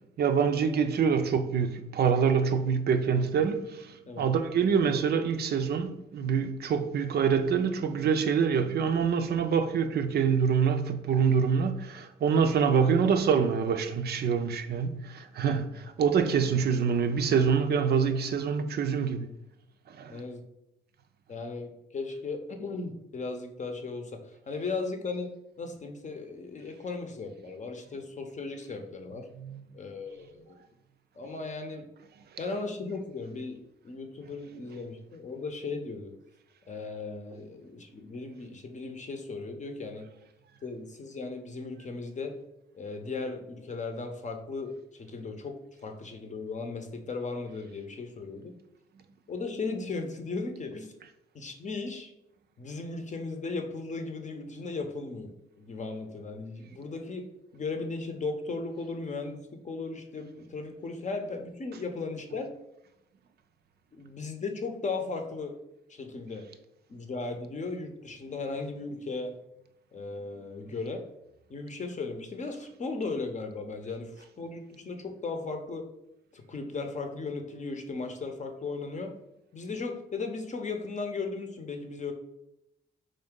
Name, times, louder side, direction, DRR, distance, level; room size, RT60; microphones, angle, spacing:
voice 1, 0.2-19.3 19.9-20.2 29.4-29.6, right 6 dB, 60° right, 0.4 m, -26 dB
voice 2, 20.1-20.4 21.3-25.3 25.6-29.3 29.7-30.5 31.2-31.9 32.4-33.6 33.8-36.1 36.7-40.1 40.6-42.3 42.7-48.5 49.3-50.9 51.3-52.1 52.6-57.3 57.5-62.5 63.9-65.6 65.9-66.5 66.9-69.3 69.9-71.0 71.5-75.9 76.3-79.1 79.5-82.1, left 3 dB, 40° left, 0.7 m, -36 dB
3.6 x 2.6 x 3.6 m
supercardioid pair, 60°, 19 cm